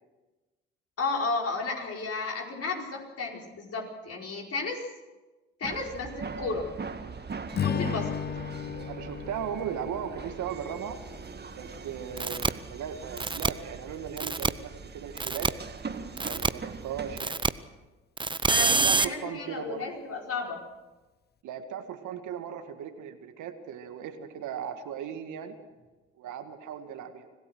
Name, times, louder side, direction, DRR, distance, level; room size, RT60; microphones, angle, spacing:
voice 1, 1.0-4.8 5.6-6.7 7.6-8.2 18.5-20.6, left 3 dB, 45° left, 0 dB, 4.9 m, -33 dB
sound 1, 5.6-17.2, right 5 dB, 30° right, 2.1 m, -41 dB
Strum, 7.5-11.9, left 8 dB, 30° left, 0.6 m, -35 dB
voice 2, 7.5-7.9 8.9-11.0 11.5-15.5 16.2-17.4 18.6-19.9 21.4-25.6 26.2-27.3, right 8 dB, 65° right, 7 dB, 2.0 m, -37 dB
sound 2, 12.2-12.5 13.2-13.5 14.2-14.5 15.2-15.5 16.2-16.5 17.2-17.5 18.2-19.1, right 4 dB, 15° right, 0.8 m, -25 dB
25.5 x 17.0 x 6.3 m, 1.2 s
hypercardioid pair, 55°, 32 cm